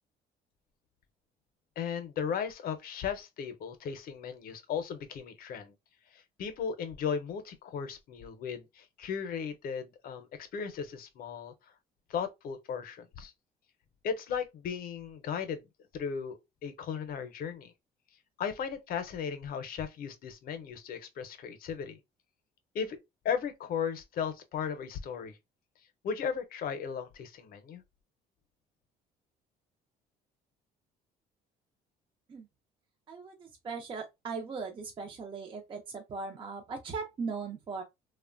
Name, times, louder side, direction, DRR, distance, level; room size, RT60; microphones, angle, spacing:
voice 1, 1.8-5.7 6.1-11.5 12.1-13.3 14.0-15.7 15.9-17.7 18.4-22.0 22.7-23.0 23.2-25.4 26.0-27.8, left 7 dB, 60° left, 0.6 m, -36 dB
voice 2, 33.1-37.8, right 4 dB, 30° right, 0.5 m, -39 dB
3.0 x 2.1 x 2.4 m
cardioid pair, 110°, 17 cm